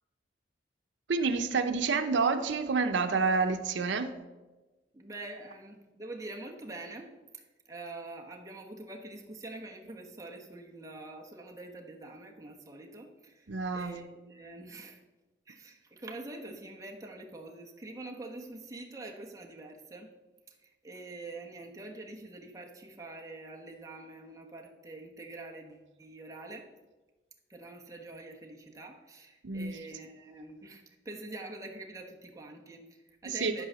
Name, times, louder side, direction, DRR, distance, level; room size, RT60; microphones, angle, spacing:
voice 1, 1.1-4.1 13.5-14.0 29.4-29.7 33.4-33.7, right 4 dB, 85° right, 7 dB, 0.7 m, -28 dB
voice 2, 4.9-15.0 15.5-20.1 20.5-26.7 27.5-33.7, right 2 dB, 20° right, 0 dB, 1.2 m, -45 dB
11.5 x 4.9 x 6.8 m, 1.2 s
head